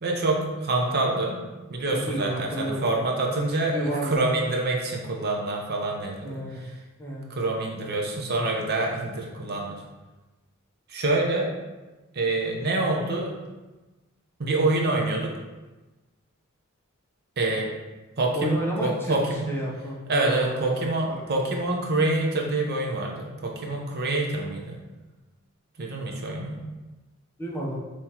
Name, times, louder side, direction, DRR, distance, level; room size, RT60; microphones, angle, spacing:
voice 1, 0.0-1.4 1.7-6.7 7.3-9.8 10.9-11.5 12.1-13.3 14.4-15.3 17.4-17.7 18.2-19.5 20.1-24.8 25.8-26.6, right 2 dB, 50° right, 0 dB, 0.7 m, -26 dB
voice 2, 2.1-3.1 3.7-4.4 6.2-6.6 7.0-7.3 18.3-19.2 19.5-20.6 27.4-27.8, right 1 dB, 10° left, -4 dB, 0.7 m, -31 dB
5.5 x 3.1 x 2.9 m, 1.2 s
head